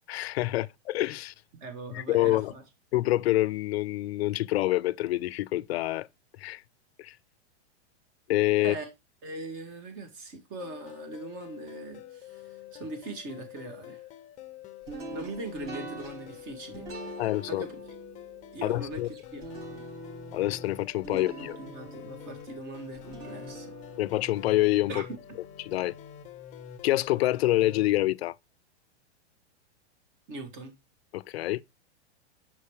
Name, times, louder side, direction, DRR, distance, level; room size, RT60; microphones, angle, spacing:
voice 1, 0.0-1.3 1.9-2.5 2.9-6.1 6.4-6.6 7.0-7.1 8.3-8.7 17.2-17.6 18.6-19.1 20.3-21.6 24.0-25.0 25.6-25.9 26.8-28.3 31.1-31.6, left 16 dB, 65° left, 0.5 m, -26 dB
voice 2, 1.6-2.6 8.6-8.9 9.2-14.0 15.1-17.0 17.5-17.8 18.5-19.0 19.3-19.9 21.1-23.7 24.9-25.2 30.3-30.7, right 2 dB, 35° right, 1.9 m, -41 dB
sound 1, 10.6-27.9, left 10 dB, 20° left, 0.7 m, -46 dB
sound 2, 14.9-25.9, right 2 dB, 60° right, 5.0 m, -45 dB
6.0 x 5.5 x 3.2 m
hypercardioid pair, 145°, 34 cm